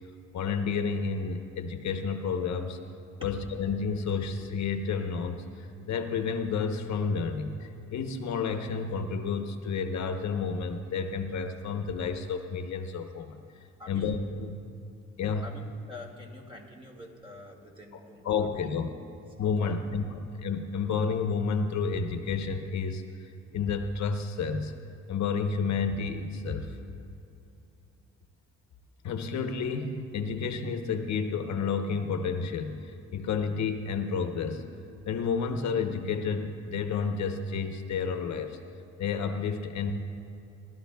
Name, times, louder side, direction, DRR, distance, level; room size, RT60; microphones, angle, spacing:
voice 1, 0.3-2.8 3.2-13.4 13.9-14.6 15.2-15.6 18.2-18.9 19.4-24.7 25.1-26.7 29.0-34.6 35.1-38.6 39.0-39.9, left 5 dB, 65° left, 6 dB, 0.9 m, -30 dB
voice 2, 13.8-14.2 15.4-19.0 19.4-19.8, left 1 dB, 15° right, 1 dB, 2.0 m, -47 dB
20.0 x 12.5 x 2.3 m, 2.7 s
cardioid pair, 90°, 30 cm